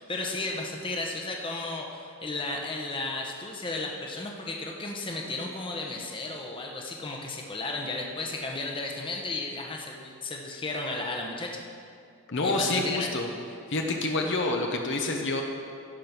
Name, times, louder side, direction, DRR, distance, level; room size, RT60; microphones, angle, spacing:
voice 1, 0.0-11.6 12.4-13.1, left 2 dB, 25° left, 0 dB, 1.0 m, -34 dB
voice 2, 12.3-13.3 13.7-15.4, left 2 dB, 55° left, 2 dB, 0.9 m, -27 dB
15.0 x 5.4 x 6.0 m, 2.3 s
head